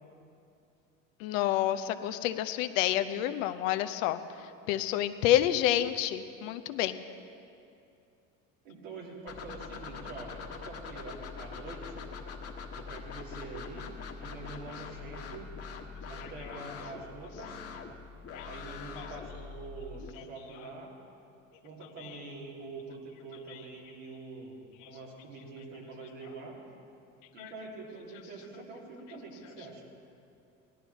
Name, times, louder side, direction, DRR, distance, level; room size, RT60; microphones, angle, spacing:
voice 1, 1.2-4.2 4.7-7.0 18.3-18.5 24.8-24.9 27.4-27.5, left 12 dB, 80° left, 10 dB, 0.7 m, -28 dB
voice 2, 8.6-12.0 12.7-13.9 14.2-15.5 16.1-17.6 18.4-20.9 21.6-24.6 24.8-26.6 27.3-29.8, right 3 dB, 90° right, -3 dB, 2.8 m, -45 dB
sound 1, 9.3-20.1, left 5 dB, 40° left, 1.4 m, -43 dB
17.0 x 12.0 x 4.1 m, 2.5 s
hypercardioid pair, 75°, 38 cm